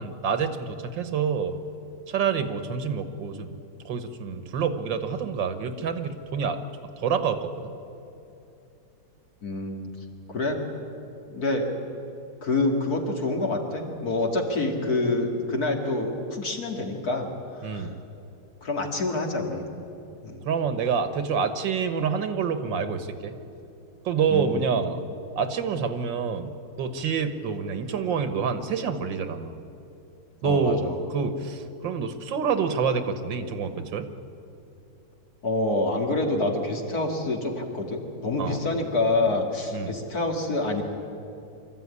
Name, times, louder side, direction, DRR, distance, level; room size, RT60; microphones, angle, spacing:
voice 1, 0.0-1.6 2.1-3.6 3.9-7.7 17.6-17.9 20.5-23.3 24.1-25.0 25.4-26.5 26.8-29.6 30.4-30.9 31.1-34.1 38.4-38.6 39.7-39.9, right 6 dB, 80° right, 9 dB, 1.9 m, -27 dB
voice 2, 9.4-9.9 10.3-10.6 11.3-11.7 12.4-17.3 17.5-17.9 18.6-19.6 20.2-20.5 24.3-24.7 30.4-31.0 35.4-40.8, left 2 dB, 55° left, 2 dB, 2.8 m, -27 dB
24.5 x 14.0 x 9.7 m, 2.8 s
omnidirectional pair, 2.0 m